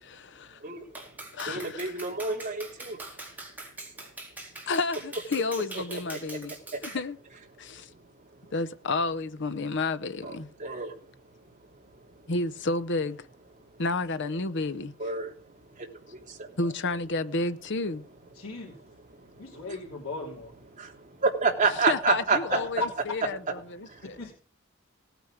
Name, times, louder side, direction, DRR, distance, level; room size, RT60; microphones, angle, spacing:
voice 1, 0.0-0.6 1.3-1.9 4.7-6.5 6.8-7.2 7.6-7.9 8.5-10.5 12.3-13.3 13.8-14.9 16.6-18.0 21.9-24.2, left 3 dB, 60° left, 0.9 m, -31 dB
Clapping, 0.9-7.1, right 2 dB, 10° right, 4.0 m, -43 dB
voice 2, 1.5-3.0 5.9-6.0 6.7-6.8 7.6-8.0 8.4-8.5 10.2-10.3 10.6-11.1 11.9-12.2 15.0-16.6 19.1-19.7 20.7-22.4 23.9-24.1, right 4 dB, 40° right, 3.0 m, -30 dB
voice 3, 18.4-18.8 19.4-20.5 22.5-22.7 24.2-24.3, left 3 dB, 80° left, 3.2 m, -38 dB
18.0 x 9.2 x 5.0 m
head